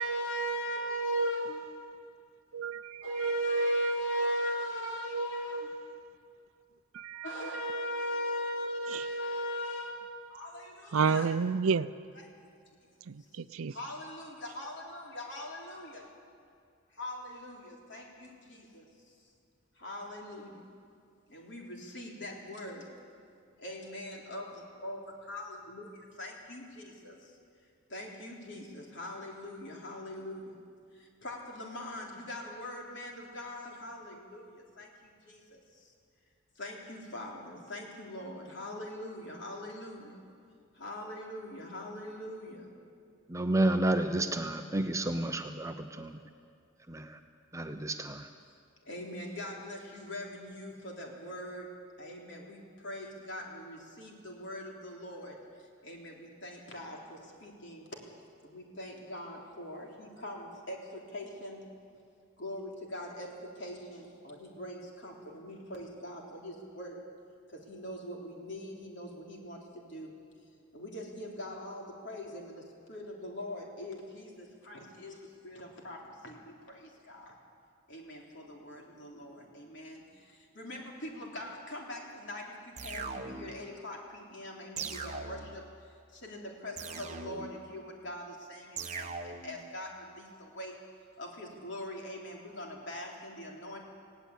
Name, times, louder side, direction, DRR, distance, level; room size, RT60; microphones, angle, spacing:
voice 1, 0.0-1.7 3.0-5.8 7.2-11.4 12.2-12.3 13.7-16.1 16.9-18.9 19.8-20.7 21.3-22.9 23.6-25.0 25.3-25.9 26.2-27.3 27.9-30.6 30.9-35.9 36.6-40.2 40.7-42.7 48.8-51.7 52.0-55.4 55.8-57.9 58.4-61.7 62.4-67.0 67.5-70.2 70.7-77.4 77.9-85.6 86.1-90.8 91.2-93.9, equal, 55° left, 0 dB, 3.5 m, -40 dB
voice 2, 2.5-3.1 6.9-7.6 8.9-9.1 10.9-11.9 13.1-13.7, right 5 dB, 85° right, 15 dB, 0.5 m, -31 dB
voice 3, 43.3-46.2 46.9-47.2 47.5-48.3, right 1 dB, 15° right, 6 dB, 0.7 m, -31 dB
sound 1, 82.8-83.7 84.8-85.7 86.8-87.7 88.8-89.6, right 4 dB, 35° right, 1.1 m, -40 dB
19.0 x 17.0 x 8.4 m, 2.4 s
head